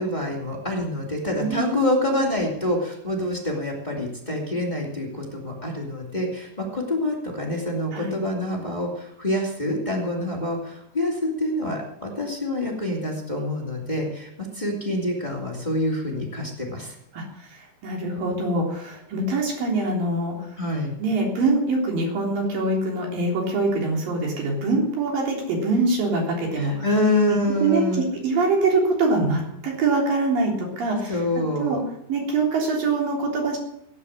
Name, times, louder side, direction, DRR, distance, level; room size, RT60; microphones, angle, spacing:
voice 1, 0.0-16.9 20.6-21.0 26.5-28.0 31.1-31.8, left 1 dB, 15° left, -1 dB, 2.5 m, -26 dB
voice 2, 17.1-20.5 21.0-26.9 27.6-27.8 28.2-31.2 31.6-31.8 32.1-33.6, right 3 dB, 90° right, 0 dB, 5.3 m, -24 dB
17.0 x 10.0 x 6.6 m, 0.76 s
omnidirectional pair, 3.9 m